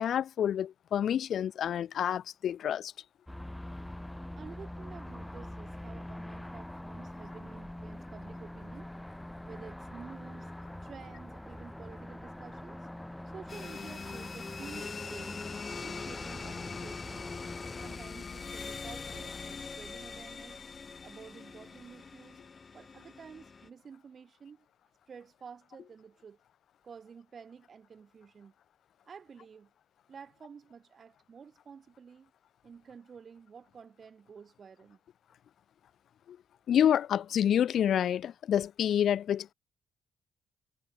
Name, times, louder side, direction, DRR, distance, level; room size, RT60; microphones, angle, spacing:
voice 1, 0.0-2.9 36.3-36.4 36.7-39.5, left 9 dB, 65° left, 0.5 m, -28 dB
sound 1, 3.3-18.0, left 1 dB, 5° left, 6.0 m, -44 dB
voice 2, 4.3-8.9 9.5-10.5 10.8-12.9 13.2-15.4 15.8-17.2 17.8-20.6 21.0-22.4 22.7-24.7 25.1-26.4 26.8-28.5 29.0-29.7 30.1-32.3 32.6-35.0, right 6 dB, 45° right, 6.3 m, -51 dB
sound 2, 13.5-23.7, left 5 dB, 35° left, 3.0 m, -42 dB
cardioid pair, 95°, 0 cm